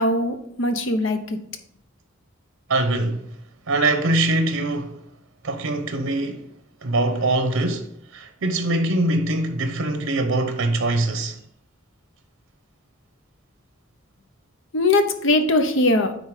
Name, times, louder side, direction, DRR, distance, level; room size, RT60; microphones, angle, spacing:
voice 1, 0.0-1.4 14.7-16.1, left 2 dB, 70° left, 0.9 m, -20 dB
voice 2, 2.7-3.2 3.7-5.0 5.4-6.5 6.8-11.4, right 2 dB, 90° right, 0.8 m, -23 dB
9.4 x 3.9 x 5.0 m
head